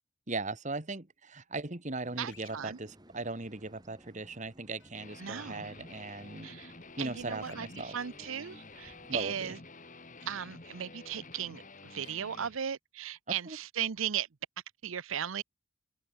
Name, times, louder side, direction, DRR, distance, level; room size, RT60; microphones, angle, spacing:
voice 1, 0.3-6.5 7.0-8.0 9.1-9.5 13.5-13.6, right 3 dB, 35° right, 1.7 m, -38 dB
sound 1, 2.0-9.2, equal, 20° right, 6.3 m, -59 dB
voice 2, 2.2-2.8 5.2-5.7 6.4-6.7 7.0-9.6 10.3-14.3 14.8-15.4, right 9 dB, 80° right, 0.7 m, -37 dB
sound 2, 2.3-2.6 4.8-4.9 7.4-7.8 10.2-10.3 12.0-12.2, left 10 dB, 60° left, 4.1 m, -57 dB
Guitar, 4.9-12.6, left 3 dB, 40° left, 5.4 m, -50 dB
open air
head